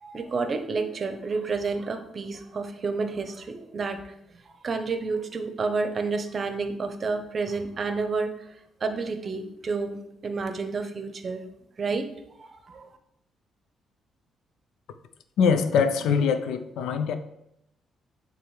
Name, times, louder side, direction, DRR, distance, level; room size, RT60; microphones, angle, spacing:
voice 1, 0.0-4.0 4.5-8.3 8.8-11.5 11.8-12.1 12.4-12.9, right 4 dB, 40° right, 8 dB, 0.7 m, -30 dB
voice 2, 15.4-17.2, left 6 dB, 85° left, 9 dB, 0.5 m, -23 dB
8.9 x 3.4 x 3.2 m, 0.80 s
cardioid pair, 90°, 0 cm